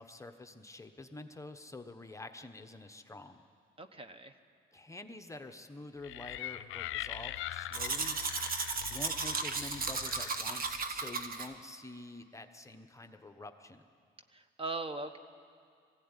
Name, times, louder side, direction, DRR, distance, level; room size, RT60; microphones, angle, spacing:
voice 1, 0.0-3.4 4.7-8.2 8.9-13.8, left 2 dB, 15° left, 5 dB, 1.1 m, -47 dB
voice 2, 3.8-4.3 14.3-15.2, right 3 dB, 30° right, 9 dB, 1.2 m, -40 dB
sound 1, 6.0-10.9, left 13 dB, 90° left, 0.5 m, -42 dB
Domestic sounds home sounds, 7.7-11.5, right 4 dB, 45° right, 1.4 m, -35 dB
21.0 x 16.0 x 9.8 m, 2.2 s
cardioid pair, 90°, 20 cm